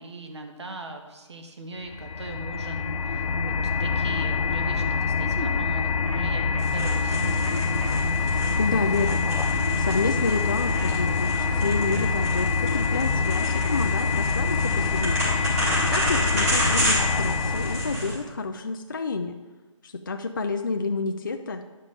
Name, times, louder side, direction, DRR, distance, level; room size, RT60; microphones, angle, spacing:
voice 1, 0.0-7.5 15.6-15.9, right 2 dB, 55° right, 4 dB, 1.4 m, -40 dB
sound 1, 1.9-18.1, left 5 dB, 90° left, 0.6 m, -25 dB
sound 2, 6.6-18.1, right 1 dB, 30° right, 3.2 m, -30 dB
voice 2, 8.6-9.3 9.8-11.3 11.6-15.3 15.9-19.4 19.8-21.6, left 4 dB, 40° left, 5 dB, 0.4 m, -29 dB
10.5 x 5.3 x 4.9 m, 1.2 s
hypercardioid pair, 175°, 17 cm